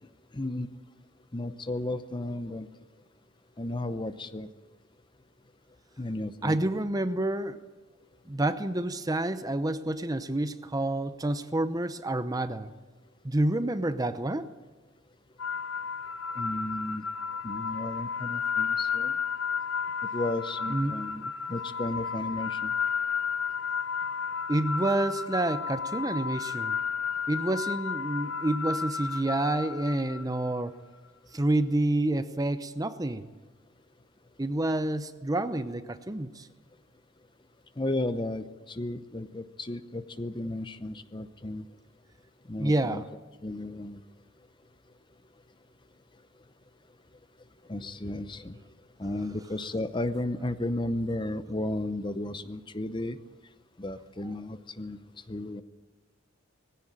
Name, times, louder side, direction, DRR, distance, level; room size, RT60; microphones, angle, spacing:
voice 1, 0.3-0.7 1.3-2.7 3.6-4.5 6.0-6.6 16.3-17.1 17.4-19.1 20.1-21.2 21.5-22.7 37.8-41.7 42.5-43.0 43.4-44.0 47.6-48.6 49.0-53.2 53.8-55.0 55.3-55.6, left 1 dB, 25° left, 12 dB, 0.7 m, -34 dB
voice 2, 6.4-7.6 8.3-12.7 13.2-14.5 20.7-20.9 21.2-21.3 24.5-26.8 27.3-30.7 31.3-33.3 34.4-36.5 42.6-43.1, right 1 dB, 20° right, 11 dB, 0.7 m, -28 dB
sound 1, 15.4-30.5, left 6 dB, 90° left, 0.7 m, -32 dB
20.0 x 16.0 x 8.8 m, 1.3 s
head